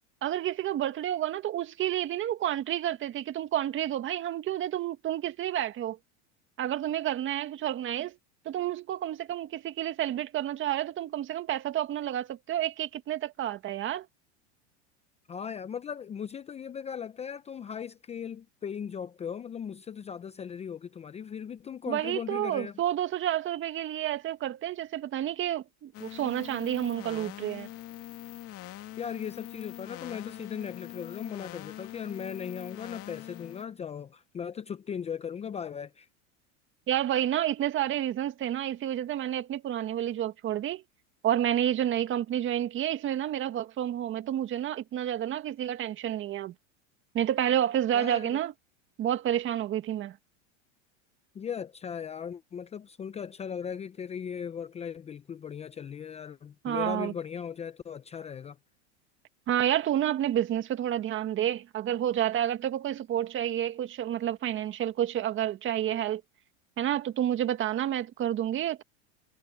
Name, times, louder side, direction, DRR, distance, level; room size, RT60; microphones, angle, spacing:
voice 1, 0.2-6.0 6.6-8.2 8.5-14.1 21.9-27.7 36.9-40.8 41.2-46.5 47.1-48.5 49.0-50.2 56.6-57.1 59.5-66.2 66.8-68.8, right 11 dB, 35° right, 2.0 m, -30 dB
voice 2, 15.3-22.7 29.0-36.1 47.9-48.4 51.3-58.6, left 7 dB, 20° left, 0.7 m, -38 dB
sound 1, 25.9-33.6, left 14 dB, 40° left, 2.6 m, -43 dB
supercardioid pair, 125°, 35 cm